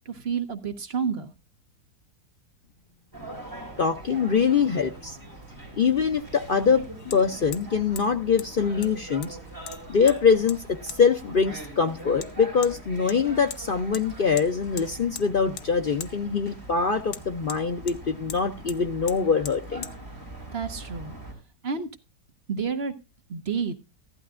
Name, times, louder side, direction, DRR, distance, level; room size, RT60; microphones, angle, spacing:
voice 1, 0.1-1.3 20.5-21.1 21.6-21.9 22.5-22.9 23.3-23.7, right 6 dB, 45° right, 1.0 m, -29 dB
sound 1, 3.1-21.3, right 2 dB, 10° right, 4.8 m, -42 dB
voice 2, 3.8-5.2 5.8-6.8 7.1-9.4 9.9-19.9, left 6 dB, 55° left, 0.6 m, -23 dB
Hammer, 5.2-5.3 7.1-7.2 7.5-7.7 8.0-8.1 8.4-8.5 8.8-9.4 9.7-10.2 10.5-10.6 10.9-11.0 12.2-12.3 12.6-12.7 13.1-13.6 13.9-14.1 14.4-14.5 14.8-15.3 15.6-15.7 16.0-16.1 17.1-18.0 18.3-18.4 18.7-18.8 19.1-19.2 19.5-19.6 19.8-20.0, left 9 dB, 75° left, 1.3 m, -39 dB
15.0 x 12.0 x 2.4 m
omnidirectional pair, 1.7 m